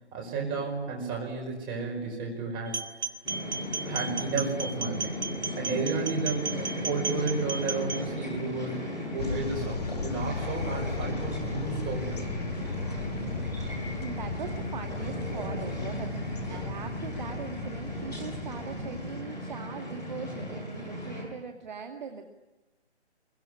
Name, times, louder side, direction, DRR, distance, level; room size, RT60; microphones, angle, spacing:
voice 1, 0.1-2.8 3.8-5.2 5.6-12.4, right 4 dB, 15° right, -1 dB, 5.4 m, -32 dB
sound 1, 2.7-8.0, right 4 dB, 75° right, 2.5 m, -35 dB
sound 2, 3.2-21.2, left 1 dB, 10° left, 6.7 m, -36 dB
sound 3, 9.2-19.2, left 4 dB, 35° left, 1.0 m, -36 dB
voice 2, 13.9-22.3, right 5 dB, 40° right, 5 dB, 2.0 m, -41 dB
24.0 x 23.0 x 9.9 m, 1.1 s
figure-of-eight pair, 160°, 34 cm